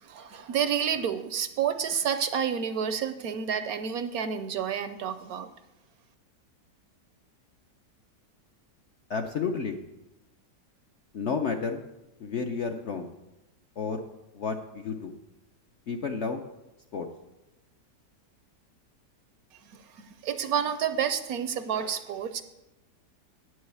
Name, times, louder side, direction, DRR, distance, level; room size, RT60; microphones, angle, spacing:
voice 1, 0.0-5.5 19.7-22.4, right 8 dB, 70° right, 11 dB, 1.0 m, -30 dB
voice 2, 9.1-9.8 11.1-11.8 12.2-13.1 13.8-14.0 14.3-15.1 15.9-16.4 16.9-17.1, left 5 dB, 60° left, 5 dB, 0.7 m, -31 dB
9.6 x 6.3 x 8.2 m, 0.97 s
omnidirectional pair, 1.9 m